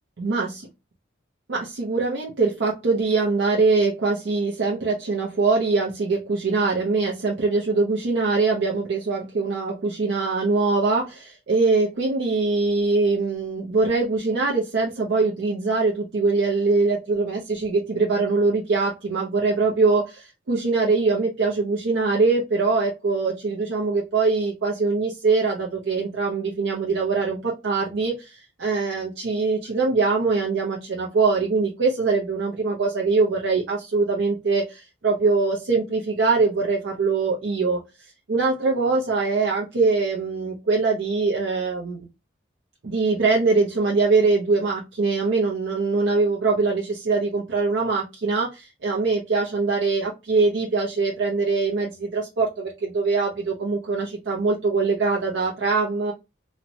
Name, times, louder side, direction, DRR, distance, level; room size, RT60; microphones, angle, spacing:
voice 1, 0.2-0.7 1.5-37.8 38.3-42.0 42.8-56.1, right 4 dB, 65° right, -3 dB, 0.5 m, -23 dB
2.9 x 2.1 x 2.6 m, 0.25 s
head